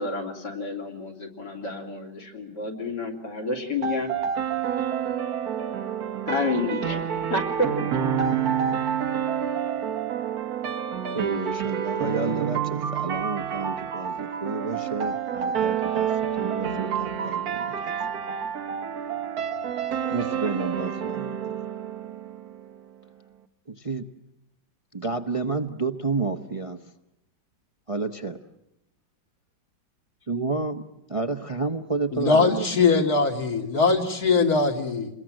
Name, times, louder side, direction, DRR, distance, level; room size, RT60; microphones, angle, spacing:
voice 1, 0.0-4.1 6.3-7.9, left 2 dB, 85° left, 3.8 m, -29 dB
sound 1, 3.8-22.8, right 8 dB, 60° right, 1.6 m, -28 dB
voice 2, 11.1-16.1 16.4-17.9 20.1-21.4 23.7-24.0 24.9-26.8 27.9-28.4 30.3-30.8 31.1-32.8, right 3 dB, 30° right, 0.7 m, -30 dB
voice 3, 32.1-35.1, left 4 dB, 60° left, 2.9 m, -21 dB
29.0 x 21.5 x 7.6 m
omnidirectional pair, 1.8 m